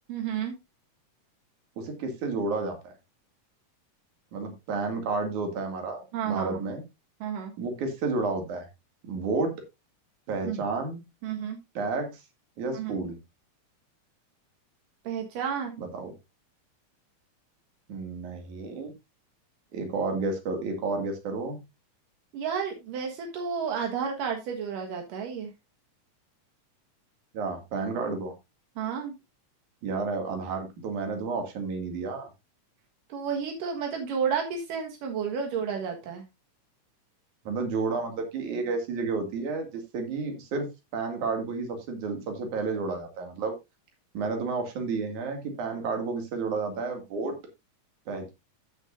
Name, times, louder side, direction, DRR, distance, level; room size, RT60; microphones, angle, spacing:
voice 1, 0.1-0.5 6.1-6.6 7.2-7.5 10.4-10.6 11.2-11.6 12.7-12.9 15.0-15.8 22.3-25.5 28.8-29.1 33.1-36.2, right 7 dB, 85° right, 2 dB, 3.2 m, -31 dB
voice 2, 1.8-2.9 4.3-6.8 7.6-8.7 9.1-9.5 10.3-11.0 11.8-12.2 12.6-13.2 15.8-16.1 17.9-18.9 19.7-21.6 27.3-28.3 29.8-32.3 37.5-40.7 40.9-43.5 44.1-47.4 48.1-48.3, right 4 dB, 70° right, 4 dB, 3.6 m, -31 dB
14.5 x 6.6 x 2.6 m, 0.22 s
omnidirectional pair, 3.7 m